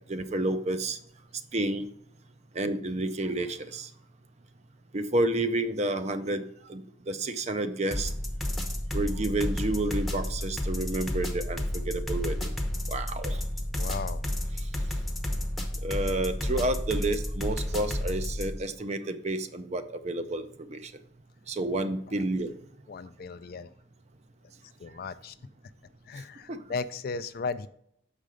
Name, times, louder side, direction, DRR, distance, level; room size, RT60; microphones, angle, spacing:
voice 1, 0.1-1.0 1.5-1.9 2.6-3.9 4.9-6.4 6.7-8.1 8.9-11.6 11.9-12.5 12.9-13.4 15.8-20.9 21.5-22.5 26.5-26.6, right 2 dB, 35° right, 10 dB, 0.5 m, -30 dB
sound 1, 7.9-18.6, left 1 dB, ahead, 0.8 m, -31 dB
voice 2, 13.8-14.2 22.1-22.2 22.9-23.7 24.8-25.4 26.1-27.7, left 4 dB, 45° left, 13 dB, 0.3 m, -36 dB
6.6 x 5.0 x 4.9 m, 0.69 s
head